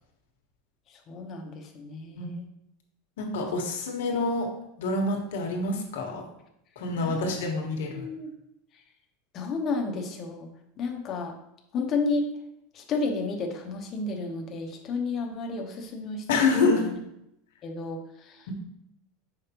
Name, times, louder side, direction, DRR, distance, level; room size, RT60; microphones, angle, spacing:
voice 1, 0.9-2.4 7.0-7.4 7.9-8.3 9.3-10.5 10.8-11.3 11.7-12.3 12.7-16.2 16.6-16.9 17.6-18.5, left 3 dB, 30° left, 3 dB, 0.8 m, -32 dB
voice 2, 3.2-4.5 4.8-6.2 6.8-8.0 16.3-16.8, left 3 dB, 85° left, 2 dB, 1.4 m, -27 dB
6.6 x 5.1 x 2.9 m, 0.80 s
supercardioid pair, 165°, 0 cm